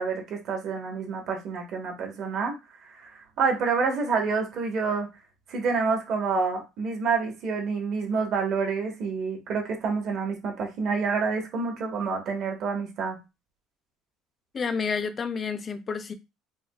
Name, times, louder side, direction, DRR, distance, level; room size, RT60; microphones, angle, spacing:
voice 1, 0.0-2.5 2.9-5.1 5.5-13.2, right 5 dB, 50° right, 2 dB, 1.0 m, -28 dB
voice 2, 14.5-16.1, left 5 dB, 30° left, 9 dB, 0.4 m, -30 dB
4.6 x 2.2 x 2.2 m, 0.25 s
cardioid pair, 135°, 0 cm